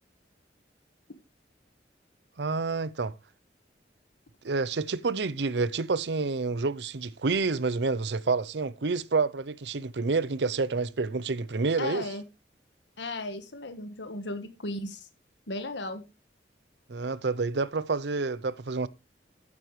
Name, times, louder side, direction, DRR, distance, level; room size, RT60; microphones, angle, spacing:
voice 1, 2.4-3.1 4.4-12.1 16.9-18.9, right 4 dB, 70° right, 0.7 m, -28 dB
voice 2, 11.8-12.2 13.0-15.1 15.5-16.0, left 2 dB, 85° left, 1.5 m, -35 dB
14.0 x 8.9 x 3.2 m
head